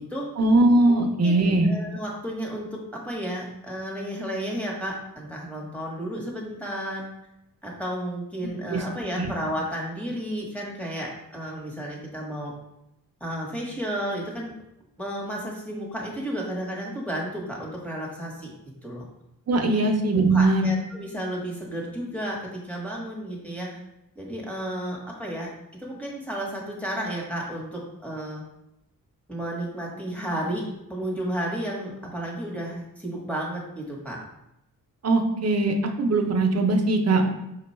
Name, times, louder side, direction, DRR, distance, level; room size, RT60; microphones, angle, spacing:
voice 1, 0.4-1.7 8.7-8.8 9.2-9.3 19.5-20.7 35.0-37.3, right 2 dB, 45° right, 4 dB, 0.6 m, -20 dB
voice 2, 0.9-7.0 7.6-12.5 13.2-14.5 15.0-18.5 18.8-19.0 19.6-19.8 20.3-23.7 24.2-28.4 29.3-34.2, right 1 dB, 5° left, -3 dB, 1.0 m, -32 dB
5.8 x 2.2 x 4.2 m, 0.87 s
wide cardioid pair, 140°, 35 cm